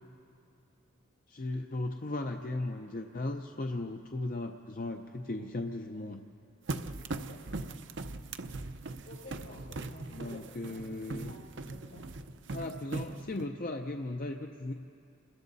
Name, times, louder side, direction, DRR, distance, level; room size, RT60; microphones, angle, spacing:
voice 1, 1.3-6.2 10.1-11.3 12.5-14.7, left 2 dB, 45° left, 4 dB, 0.6 m, -37 dB
voice 2, 6.7-7.9 9.0-12.1, left 1 dB, 75° left, -4 dB, 6.9 m, -52 dB
sound 1, 6.7-13.5, right 2 dB, 60° right, 0.7 m, -40 dB
29.5 x 21.5 x 4.1 m, 2.7 s
head